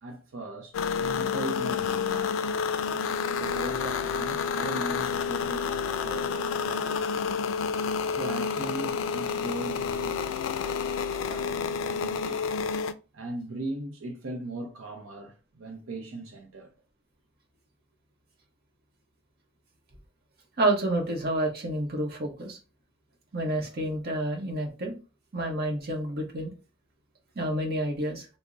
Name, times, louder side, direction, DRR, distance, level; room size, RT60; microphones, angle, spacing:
voice 1, 0.0-2.6 3.4-7.4 8.2-10.2 10.7-12.5 13.1-16.7, right 2 dB, 85° right, 0.6 m, -39 dB
sound 1, 0.7-12.9, left 6 dB, 80° left, 0.3 m, -29 dB
voice 2, 20.6-22.6 23.3-24.9 25.3-26.5 27.4-28.3, right 1 dB, 55° right, 0.9 m, -29 dB
3.4 x 2.1 x 3.8 m
head